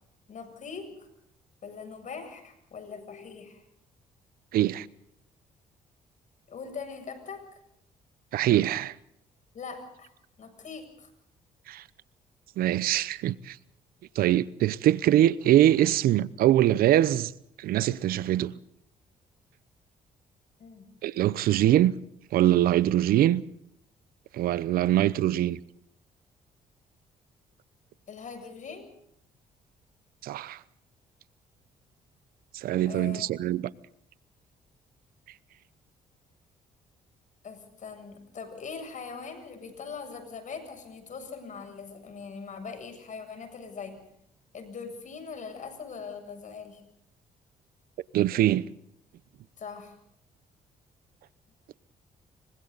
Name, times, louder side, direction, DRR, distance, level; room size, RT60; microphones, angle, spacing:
voice 1, 0.3-1.1 1.6-3.6 6.5-7.6 9.5-10.1 10.4-11.1 20.6-20.9 28.1-28.9 32.8-33.3 37.4-44.0 44.5-46.8 49.6-49.9, left 5 dB, 55° left, 7.6 m, -41 dB
voice 2, 4.5-4.9 8.3-8.9 11.7-11.8 12.6-13.6 14.2-17.3 17.6-18.6 21.0-21.9 22.3-23.4 24.3-25.6 30.2-30.6 32.5-33.7 48.1-48.6, right 13 dB, 75° right, 0.8 m, -23 dB
29.0 x 24.0 x 4.1 m
supercardioid pair, 70°, 15 cm